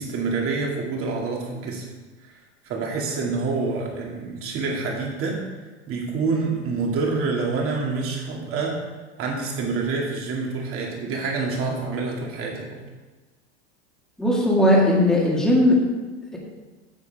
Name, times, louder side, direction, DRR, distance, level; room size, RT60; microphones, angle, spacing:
voice 1, 0.0-1.9 2.6-5.4 5.9-8.8 9.2-12.7, right 4 dB, 40° right, -1 dB, 2.3 m, -27 dB
voice 2, 14.2-15.8, left 1 dB, ahead, -4 dB, 2.0 m, -18 dB
9.8 x 7.0 x 3.5 m, 1.3 s
supercardioid pair, 120°, 35 cm